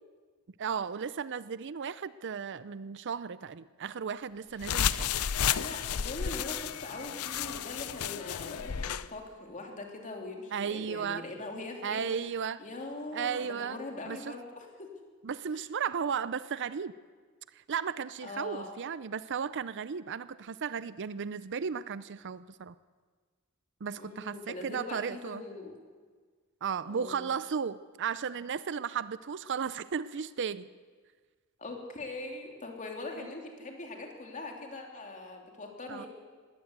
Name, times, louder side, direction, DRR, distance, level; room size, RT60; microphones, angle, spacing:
voice 1, 0.6-5.1 10.5-11.3 11.8-12.6 13.1-13.8 14.1-14.3 15.2-16.9 17.5-22.7 23.8-25.4 26.6-30.7 33.2-33.3 35.9-36.1, right 6 dB, 55° right, 17 dB, 0.5 m, -35 dB
sound 1, 4.6-9.1, left 8 dB, 85° left, 0.6 m, -32 dB
voice 2, 5.4-14.9 15.5-15.6 18.2-18.7 24.0-25.7 26.8-27.3 31.6-36.1, left 2 dB, 35° left, 1 dB, 3.2 m, -42 dB
20.5 x 16.5 x 8.0 m, 1.5 s
head